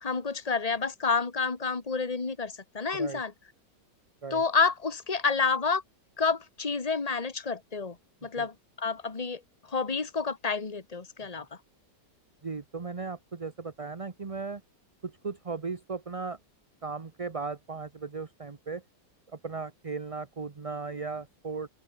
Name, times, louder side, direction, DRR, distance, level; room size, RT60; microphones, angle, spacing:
voice 1, 0.0-3.3 4.3-5.8 6.2-8.0 8.2-9.4 9.7-11.5, left 5 dB, 20° left, 1.9 m, -29 dB
voice 2, 12.4-14.6 15.0-16.4 16.8-18.8 19.3-21.7, right 4 dB, 30° right, 0.7 m, -37 dB
open air
omnidirectional pair, 1.9 m